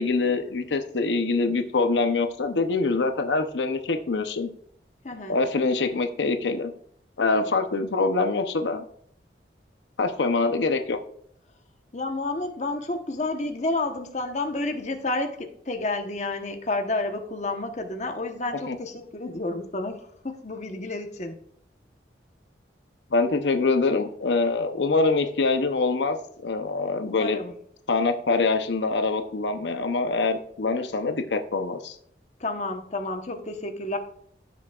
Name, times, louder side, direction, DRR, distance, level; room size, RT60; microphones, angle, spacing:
voice 1, 0.0-4.5 5.3-6.7 7.2-8.8 10.0-11.0 18.7-18.8 23.1-26.2 26.4-27.4 27.9-32.0, left 3 dB, 85° left, 7 dB, 0.7 m, -24 dB
voice 2, 5.0-5.4 11.9-21.4 27.0-27.5 32.4-34.0, left 2 dB, 40° left, 5 dB, 1.0 m, -30 dB
14.5 x 6.1 x 2.4 m, 0.66 s
head